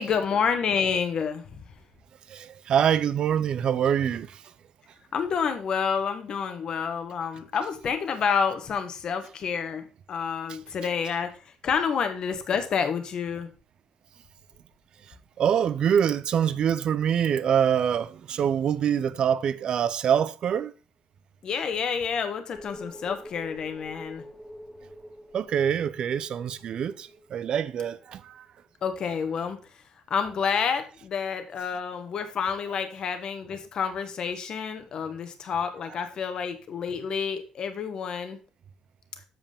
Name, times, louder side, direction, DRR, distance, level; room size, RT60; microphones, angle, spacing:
voice 1, 0.0-1.7 5.1-13.5 21.4-24.2 28.8-29.8 30.1-38.4, left 6 dB, 40° left, 1.1 m, -29 dB
voice 2, 2.3-4.4 15.4-20.7 25.3-28.5, right 8 dB, 45° right, 0.5 m, -25 dB
sound 1, 22.5-27.7 28.0-28.1, left 1 dB, 5° left, 1.8 m, -45 dB
7.7 x 7.1 x 3.4 m
cardioid pair, 180°, 2 cm